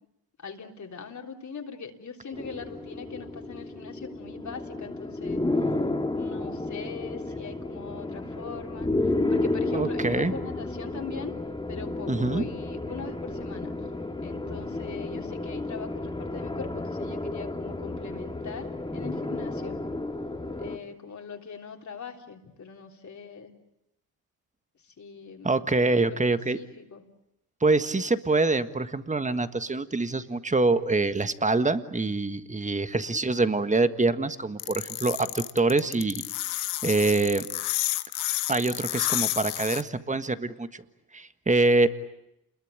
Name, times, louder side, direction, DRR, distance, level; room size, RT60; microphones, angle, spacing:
voice 1, 0.4-5.5 6.1-11.3 11.7-13.7 14.2-19.8 20.6-23.5 24.8-25.5 25.8-27.1 32.8-33.2, left 5 dB, 45° left, 2 dB, 3.5 m, -41 dB
sound 1, 2.3-20.8, left 2 dB, 10° left, 2.2 m, -32 dB
voice 2, 9.7-10.3 12.1-12.4 25.4-26.6 27.6-36.2 36.5-37.5 38.5-40.8 41.1-41.9, right 3 dB, 15° right, 11 dB, 1.5 m, -25 dB
sound 2, 34.6-39.8, left 15 dB, 80° left, 1.1 m, -30 dB
28.0 x 21.5 x 9.0 m, 0.83 s
cardioid pair, 80°, 41 cm